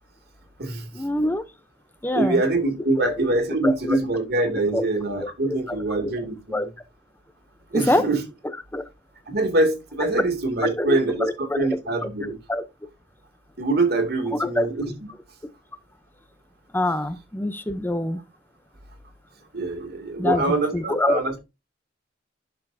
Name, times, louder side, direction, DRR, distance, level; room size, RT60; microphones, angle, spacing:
voice 1, 0.9-1.4 2.0-2.4 3.0-3.1 3.6-4.0 4.7-4.9 5.7-5.8 6.5-6.7 7.7-8.1 8.7-8.9 10.6-11.7 12.2-12.6 14.3-14.7 16.7-18.2 20.2-21.2, left 1 dB, 10° left, 0.6 m, -25 dB
voice 2, 2.1-6.7 7.7-8.2 9.3-12.4 13.6-14.9 19.5-21.3, right 2 dB, 55° right, 2.4 m, -24 dB
11.0 x 6.8 x 2.6 m
head